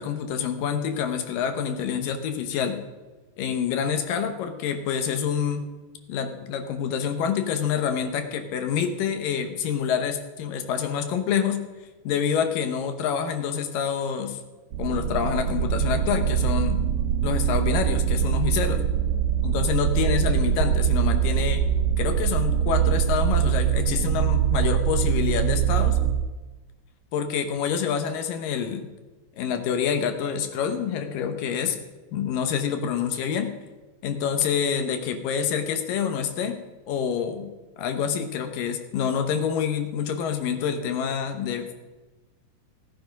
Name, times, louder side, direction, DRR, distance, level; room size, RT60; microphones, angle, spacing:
voice 1, 0.0-2.8 3.4-5.7 6.1-11.6 12.0-14.4 14.8-16.8 17.2-18.8 19.4-21.7 22.0-26.0 27.1-28.9 29.3-31.8 32.1-33.5 34.0-36.6 36.9-41.8, left 7 dB, 70° left, 7 dB, 2.2 m, -27 dB
sound 1, 14.7-26.1, right 9 dB, 85° right, 3.3 m, -23 dB
16.5 x 9.4 x 5.2 m, 1.2 s
omnidirectional pair, 4.9 m